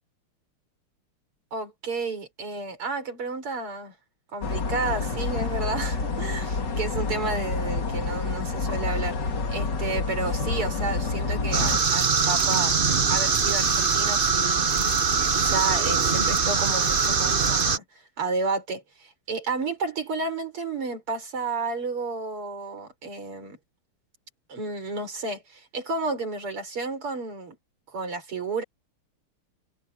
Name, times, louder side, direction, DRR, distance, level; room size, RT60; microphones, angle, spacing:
voice 1, 1.5-3.9 4.3-9.2 9.5-12.8 13.1-14.7 15.0-17.8 18.2-23.6 24.5-27.6 27.9-28.6, right 3 dB, 85° right, 5.6 m, -31 dB
sound 1, 4.4-11.8, left 4 dB, 50° left, 2.9 m, -28 dB
sound 2, 11.5-17.8, right 5 dB, 35° right, 0.8 m, -22 dB
omnidirectional pair, 2.4 m